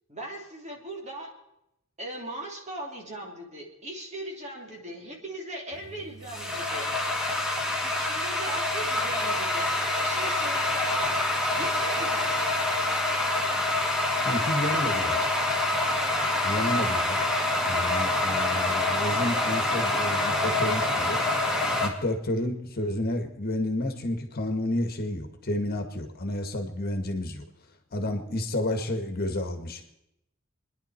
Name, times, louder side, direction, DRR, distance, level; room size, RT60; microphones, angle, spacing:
voice 1, 0.1-1.3 2.0-6.9 7.7-11.2 11.5-12.3, right 1 dB, 35° right, 0 dB, 3.2 m, -39 dB
sound 1, 5.7-21.9, left 2 dB, 5° right, 2.3 m, -26 dB
voice 2, 14.2-15.3 16.4-17.2 17.7-21.2 21.8-27.4 27.9-29.8, left 1 dB, 50° left, 6 dB, 1.6 m, -30 dB
26.5 x 10.5 x 4.4 m, 0.84 s
head